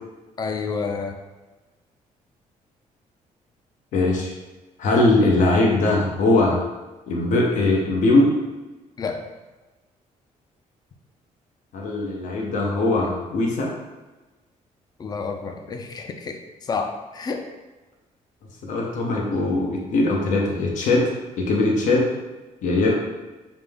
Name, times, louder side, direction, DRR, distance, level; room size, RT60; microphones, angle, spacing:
voice 1, 0.4-1.2 9.0-9.2 15.0-17.5, left 5 dB, 30° left, 5 dB, 0.4 m, -29 dB
voice 2, 3.9-4.3 4.8-6.6 7.1-8.3 11.7-13.7 18.6-21.1 21.4-22.1 22.6-22.9, left 2 dB, 70° left, -1 dB, 0.7 m, -20 dB
5.1 x 2.1 x 3.4 m, 1.2 s
cardioid pair, 130°, 14 cm